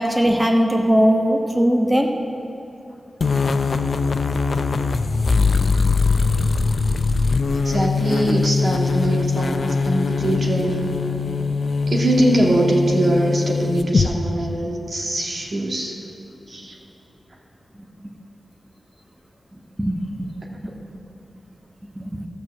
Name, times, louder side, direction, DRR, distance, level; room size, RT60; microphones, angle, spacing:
voice 1, 0.0-2.1 19.8-20.0 20.6-20.7 22.0-22.2, equal, 10° right, 2 dB, 1.0 m, -19 dB
sound 1, 3.2-14.1, left 4 dB, 65° left, 0.5 m, -21 dB
voice 2, 7.5-10.9 11.9-16.0 16.5-16.8, right 1 dB, 65° right, -2 dB, 1.9 m, -22 dB
13.0 x 6.1 x 7.5 m, 2.9 s
cardioid pair, 50°, 0 cm